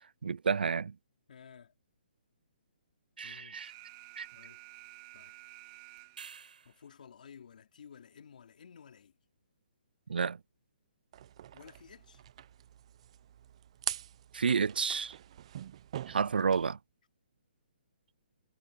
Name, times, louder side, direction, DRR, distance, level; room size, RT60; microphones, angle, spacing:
voice 1, 0.2-1.0 3.2-3.7 4.2-4.3 10.1-10.4 14.3-15.2 16.1-16.8, right 6 dB, 85° right, 0.5 m, -30 dB
voice 2, 1.3-1.7 3.2-3.9 4.3-4.6 5.1-5.3 6.6-9.1 11.5-12.2, left 7 dB, 60° left, 3.8 m, -54 dB
Alarm, 3.6-6.5, right 24 dB, 25° right, 1.3 m, -52 dB
sound 1, 6.0-7.0 11.6-11.7, right 6 dB, 70° right, 4.8 m, -50 dB
sound 2, 11.1-16.7, right 11 dB, 40° right, 0.7 m, -44 dB
hypercardioid pair, 160°, 5 cm